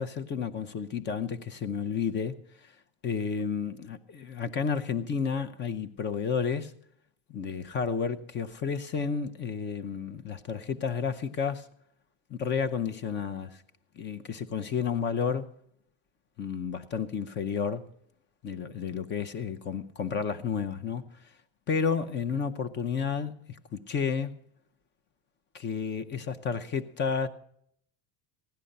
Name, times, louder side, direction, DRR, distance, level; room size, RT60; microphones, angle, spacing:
voice 1, 0.0-2.7 3.0-6.7 7.3-11.7 12.3-13.6 14.0-15.5 16.4-17.9 18.4-21.0 21.7-24.4 25.5-27.3, left 6 dB, 25° left, 0.7 m, -31 dB
16.5 x 11.5 x 5.4 m
cardioid pair, 170°, 43 cm